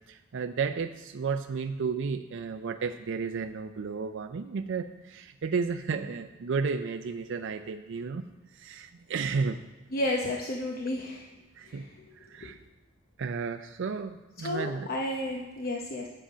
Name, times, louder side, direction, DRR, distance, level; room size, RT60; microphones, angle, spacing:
voice 1, 0.1-8.3 8.5-9.6 11.6-11.8 12.2-12.6 13.2-14.9, right 5 dB, 65° right, 7 dB, 0.4 m, -33 dB
voice 2, 9.9-11.3 11.6-12.0 12.4-12.5 14.4-16.1, left 1 dB, 50° left, 0 dB, 0.8 m, -32 dB
8.4 x 7.8 x 5.0 m, 1.2 s
head